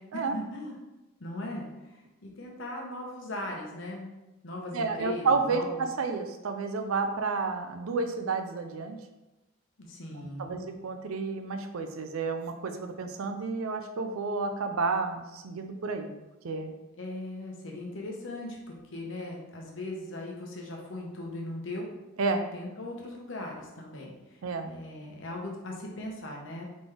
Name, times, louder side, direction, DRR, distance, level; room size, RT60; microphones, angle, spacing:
voice 1, 0.1-0.8 1.2-1.7 2.2-4.1 4.4-5.9 9.8-10.6 16.9-18.6 18.9-21.9 22.5-24.1 24.6-26.6, left 1 dB, 65° left, -1 dB, 0.9 m, -38 dB
voice 2, 4.7-9.0 10.1-16.1 16.4-16.7 22.2-22.4 24.4-24.7, right 4 dB, 85° right, 6 dB, 0.5 m, -31 dB
3.9 x 3.7 x 3.3 m, 1.0 s
head